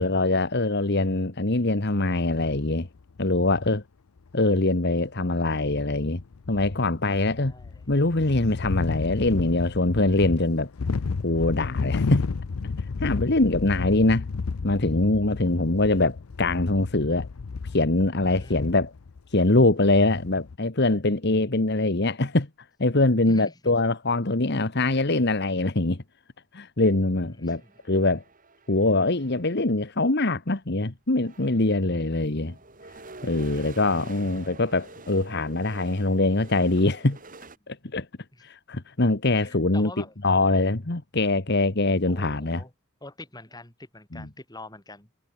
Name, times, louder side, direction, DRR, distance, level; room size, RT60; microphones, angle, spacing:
voice 1, 0.0-2.9 3.2-3.8 4.3-6.2 6.5-7.5 7.9-10.7 11.2-12.2 13.0-14.2 14.6-17.3 17.7-18.9 19.3-22.5 22.8-26.0 26.5-27.6 27.9-28.2 28.7-32.5 33.2-37.2 37.7-38.1 38.4-39.9 40.2-42.6 44.1-44.3, left 2 dB, 50° left, 1.5 m, -23 dB
sound 1, 2.3-3.7 4.2-4.3 4.5-4.6 5.4-5.5 5.7-19.2 19.9-20.6, left 4 dB, 90° left, 0.6 m, -33 dB
voice 2, 7.4-7.8 13.8-13.9 18.4-18.8 23.3-23.7 27.3-27.7 38.3-38.4 39.4-40.1 42.1-42.7 43.0-45.1, left 2 dB, 20° left, 5.5 m, -45 dB
sound 2, 27.5-29.7 30.7-30.8 31.1-37.6, right 3 dB, 40° right, 4.5 m, -48 dB
head